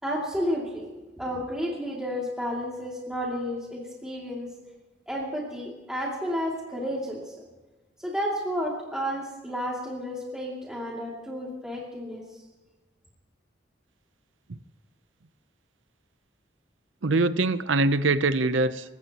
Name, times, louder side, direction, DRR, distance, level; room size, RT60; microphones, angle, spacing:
voice 1, 0.0-0.9 1.2-4.5 5.1-7.3 8.0-12.4, equal, 5° right, -4 dB, 2.6 m, -31 dB
voice 2, 17.0-19.0, right 3 dB, 90° right, 13 dB, 0.8 m, -23 dB
28.0 x 16.0 x 3.0 m, 1.2 s
head